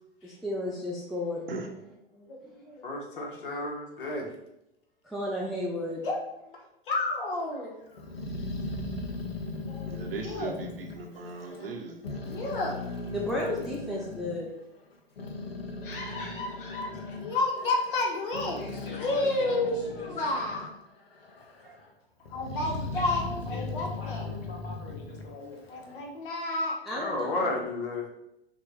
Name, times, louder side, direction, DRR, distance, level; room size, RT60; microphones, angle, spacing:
voice 1, 0.2-1.4 2.4-2.5 5.0-6.0 13.1-14.5 26.9-27.5, left 1 dB, ahead, -4 dB, 0.4 m, -33 dB
voice 2, 2.6-4.3 6.0-6.2 6.9-7.7 9.7-10.5 11.1-11.2 12.3-12.7 15.8-18.6 19.0-19.8 20.0-20.7 22.3-24.3 25.7-28.1, left 2 dB, 60° left, 1 dB, 1.1 m, -31 dB
Growling, 8.0-11.7 12.0-14.4 14.9-20.8 21.1-21.8 22.3-26.0, left 2 dB, 80° left, 0.7 m, -38 dB
voice 3, 9.9-12.2, right 3 dB, 70° right, 2 dB, 0.8 m, -38 dB
voice 4, 18.5-20.1 22.9-23.2 23.5-25.6, left 3 dB, 35° left, 0 dB, 1.2 m, -44 dB
5.7 x 2.2 x 3.2 m, 0.85 s
figure-of-eight pair, 90°, 30 cm